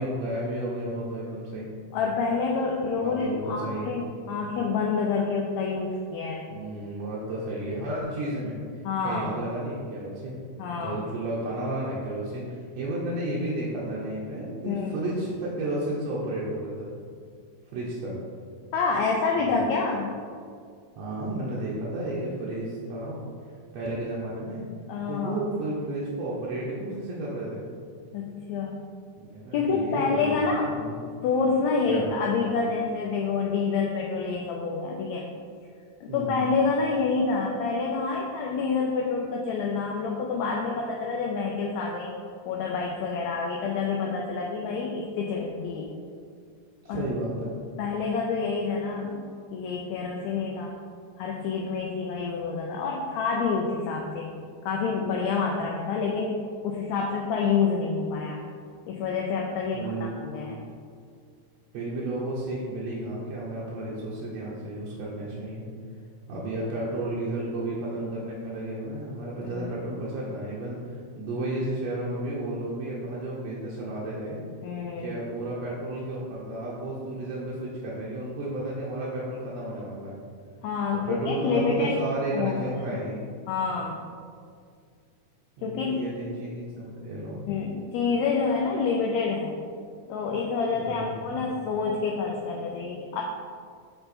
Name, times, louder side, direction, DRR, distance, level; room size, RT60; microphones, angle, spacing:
voice 1, 0.0-1.7 3.0-3.9 6.5-10.4 10.7-16.9 17.7-18.1 19.4-19.6 21.0-23.3 23.7-24.6 25.1-27.6 29.2-31.0 31.9-32.1 36.1-36.4 46.8-47.5 59.7-60.2 61.7-65.6 66.3-74.4 75.0-80.2 81.1-83.3 85.6-87.4 90.7-91.4, right 1 dB, 70° right, -7 dB, 1.8 m, -32 dB
voice 2, 1.9-6.5 8.8-9.3 10.6-11.0 14.7-14.9 18.7-20.1 24.9-25.4 28.1-28.8 29.5-30.7 31.2-35.3 36.0-42.1 42.4-45.9 46.9-47.0 47.8-50.7 51.2-54.3 54.6-58.4 58.9-60.6 66.3-66.4 69.6-69.7 74.6-75.1 80.6-82.0 82.3-82.6 83.5-84.0 85.6-86.0 87.3-89.6 90.1-93.2, left 4 dB, 80° left, 0 dB, 1.7 m, -28 dB
6.8 x 3.6 x 4.1 m, 2.1 s
omnidirectional pair, 3.5 m